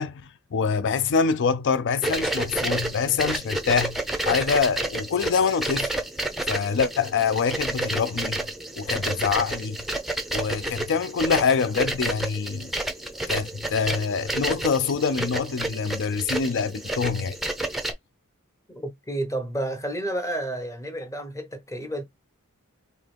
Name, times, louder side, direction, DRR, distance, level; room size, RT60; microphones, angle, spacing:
voice 1, 0.0-4.0 4.3-6.0 6.5-8.4 8.8-9.8 10.3-12.7 13.3-17.4, left 5 dB, 55° left, 0.4 m, -25 dB
sound 1, 2.0-17.9, right 1 dB, ahead, 0.6 m, -30 dB
voice 2, 18.7-22.0, right 1 dB, 15° left, 0.9 m, -31 dB
3.8 x 2.7 x 3.3 m
head